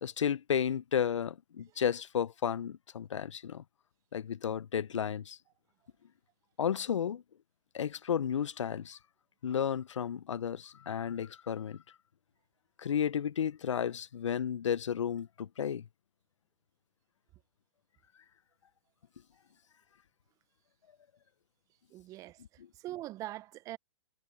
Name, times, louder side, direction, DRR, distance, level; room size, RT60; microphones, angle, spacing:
voice 1, 0.0-3.6 4.1-5.4 6.6-7.2 7.7-9.0 9.4-11.8 12.8-15.9, left 8 dB, 80° left, 0.6 m, -33 dB
voice 2, 21.9-23.8, right 15 dB, 20° right, 0.5 m, -43 dB
hypercardioid pair, 130°, 16 cm